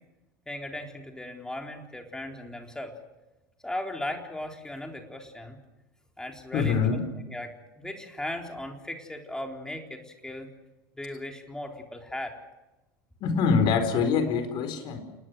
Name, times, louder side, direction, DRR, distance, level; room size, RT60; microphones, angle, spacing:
voice 1, 0.5-2.9 3.6-5.6 6.2-7.0 7.3-10.5 10.9-12.4, left 1 dB, 5° left, 3 dB, 3.9 m, -37 dB
voice 2, 6.5-7.0 13.2-15.0, left 5 dB, 45° left, 8 dB, 4.3 m, -24 dB
29.0 x 20.5 x 6.4 m, 1.0 s
figure-of-eight pair, 75°, 11 cm